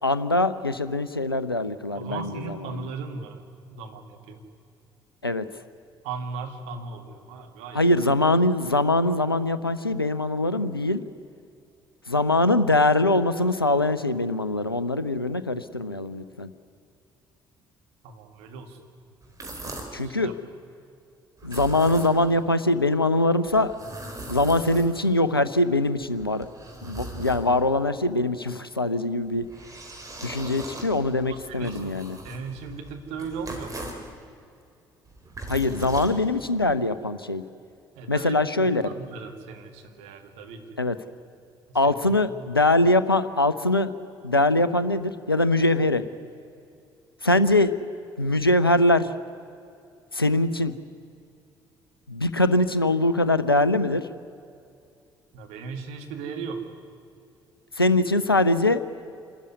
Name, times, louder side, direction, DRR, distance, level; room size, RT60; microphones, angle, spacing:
voice 1, 0.0-2.3 2.7-2.8 5.2-5.5 7.7-11.0 12.1-16.5 19.9-20.4 21.4-23.8 24.3-26.5 26.8-29.5 30.2-32.2 35.5-37.4 38.1-38.8 40.8-41.0 41.7-43.9 44.2-46.0 47.2-47.8 48.2-49.1 50.1-50.7 52.1-54.1 57.8-58.8, left 2 dB, 90° left, 14 dB, 0.5 m, -22 dB
voice 2, 1.9-4.5 6.0-7.8 18.0-18.8 20.0-20.3 31.3-31.9 32.2-33.9 38.0-40.8 41.7-42.5 55.3-56.7, right 5 dB, 65° right, 4 dB, 2.1 m, -37 dB
sound 1, 19.2-20.1 21.4-22.4 23.5-25.2 26.0-27.8 29.2-34.1 35.1-36.7, right 2 dB, 30° right, 4.1 m, -40 dB
26.5 x 13.5 x 9.6 m, 2.5 s
figure-of-eight pair, 50°, 12 cm